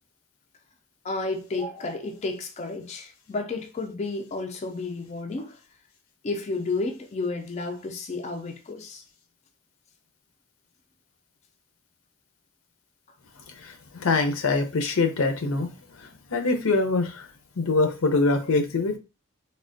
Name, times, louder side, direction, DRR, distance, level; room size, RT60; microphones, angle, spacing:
voice 1, 1.0-5.6 6.2-9.0, left 3 dB, 30° left, 0.3 m, -31 dB
voice 2, 13.6-17.3 17.6-19.0, left 3 dB, 85° left, 0.6 m, -24 dB
3.3 x 2.1 x 2.5 m
head